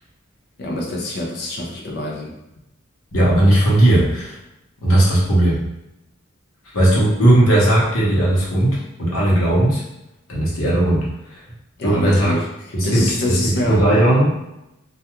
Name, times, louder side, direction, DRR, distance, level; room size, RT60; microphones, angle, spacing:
voice 1, 0.6-2.3 6.9-7.1 11.8-13.9, left 1 dB, 55° left, -2 dB, 0.5 m, -26 dB
voice 2, 3.1-4.4 4.8-5.6 6.7-9.8 10.3-11.0 11.3-11.4 11.8-12.4 12.7-14.5, right 1 dB, 90° left, -5 dB, 0.9 m, -17 dB
2.3 x 2.2 x 2.9 m, 0.89 s
head